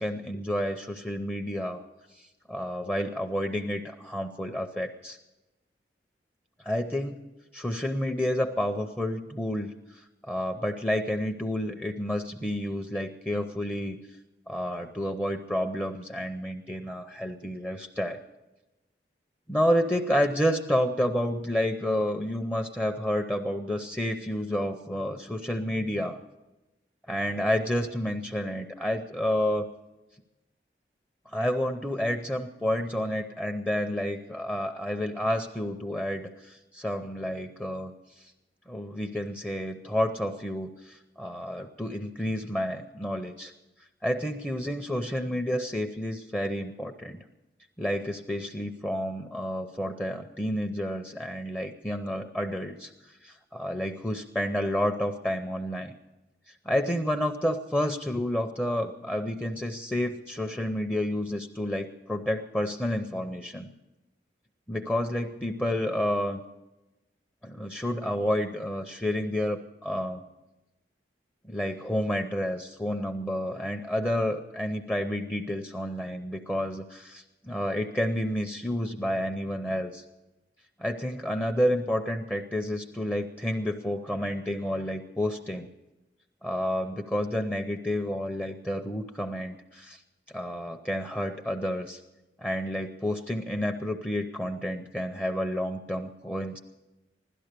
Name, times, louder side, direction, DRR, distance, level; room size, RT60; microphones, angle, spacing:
voice 1, 0.0-1.8 2.1-5.2 6.6-7.2 7.5-14.0 14.5-18.2 19.5-26.2 27.1-29.7 31.3-38.3 38.7-43.5 44.0-47.2 47.8-55.9 56.6-63.7 64.7-66.4 67.4-70.2 71.5-80.0 80.8-85.7 86.4-90.0 90.3-92.0 92.4-96.6, equal, 10° left, 4 dB, 0.6 m, -30 dB
16.5 x 12.5 x 6.7 m, 1.0 s
head